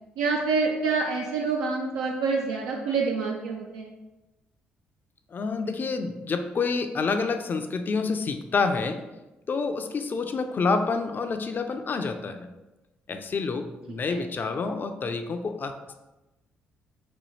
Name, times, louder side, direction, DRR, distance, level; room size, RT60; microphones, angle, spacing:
voice 1, 0.2-3.9 13.9-14.2, right 4 dB, 80° right, -1 dB, 0.4 m, -27 dB
voice 2, 5.3-9.0 9.5-12.5 13.1-15.9, left 4 dB, 45° left, 7 dB, 0.4 m, -28 dB
4.2 x 2.2 x 3.1 m, 1.0 s
hypercardioid pair, 50°, 5 cm